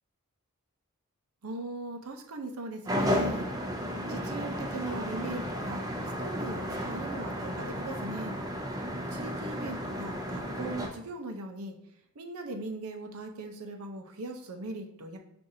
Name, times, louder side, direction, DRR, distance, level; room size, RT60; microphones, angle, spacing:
voice 1, 1.4-3.5 4.1-5.9 6.2-8.4 9.1-11.8 12.2-15.2, right 2 dB, 70° right, 4 dB, 0.6 m, -39 dB
sound 1, 2.8-10.9, equal, 15° right, 0.6 m, -33 dB
6.3 x 2.5 x 2.7 m, 0.80 s
head